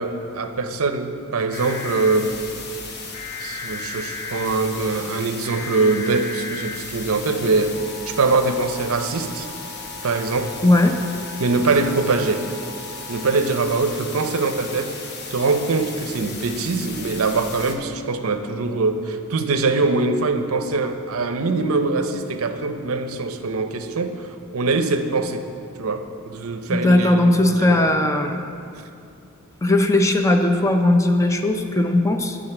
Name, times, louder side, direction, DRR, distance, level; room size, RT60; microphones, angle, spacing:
voice 1, 0.0-2.4 3.4-7.8 8.1-9.5 10.0-10.5 11.4-12.5 13.1-15.0 15.3-25.4 25.8-27.8, right 3 dB, 65° right, 8 dB, 0.6 m, -23 dB
sound 1, 1.5-17.7, left 4 dB, 50° left, 1.0 m, -35 dB
voice 2, 10.6-11.0 26.7-28.4 29.6-32.4, left 1 dB, 15° left, 5 dB, 0.5 m, -18 dB
11.5 x 3.9 x 7.8 m, 2.5 s
head